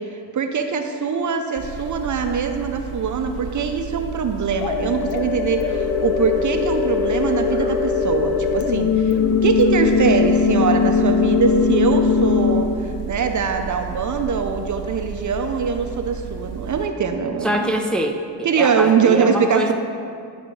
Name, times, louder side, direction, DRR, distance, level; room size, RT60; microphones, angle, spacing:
voice 1, 0.3-9.1 9.4-12.7 13.1-17.6 18.4-19.7, right 5 dB, 45° right, 6 dB, 0.7 m, -22 dB
sound 1, 1.6-16.9, right 7 dB, 75° right, 1.0 m, -33 dB
sound 2, 4.6-12.6, left 6 dB, 80° left, 0.7 m, -20 dB
voice 2, 17.4-19.7, right 1 dB, ahead, 2 dB, 0.5 m, -24 dB
11.0 x 4.0 x 4.7 m, 2.3 s
cardioid pair, 75°, 41 cm